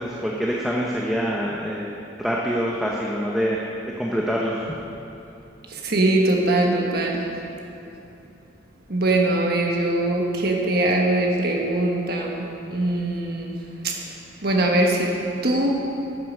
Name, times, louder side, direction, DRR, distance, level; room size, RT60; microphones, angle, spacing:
voice 1, 0.0-1.9 2.2-3.7 4.0-4.7, equal, ahead, -4 dB, 0.7 m, -25 dB
voice 2, 5.7-7.3 8.9-13.6 13.8-14.0 14.4-15.1 15.4-15.8, right 2 dB, 50° right, 0 dB, 1.3 m, -22 dB
9.4 x 7.8 x 6.5 m, 2.9 s
head